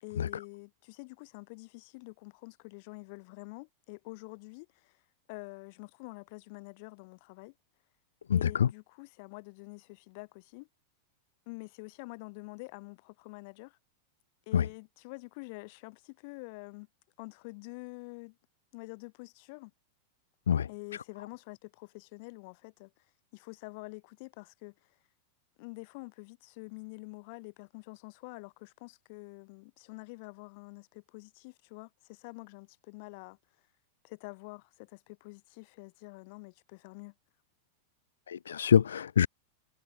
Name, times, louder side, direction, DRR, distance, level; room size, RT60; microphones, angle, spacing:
voice 1, 0.0-5.0 5.3-7.5 8.3-10.7 11.5-13.8 14.5-16.9 17.2-18.4 18.7-19.7 20.7-23.1 23.3-25.0 25.6-33.4 34.0-37.1, left 29 dB, 45° left, 2.4 m, -47 dB
voice 2, 8.3-8.7 14.5-14.6 20.5-20.7 38.3-39.3, left 8 dB, 65° left, 0.4 m, -25 dB
figure-of-eight pair, 90°, 0 cm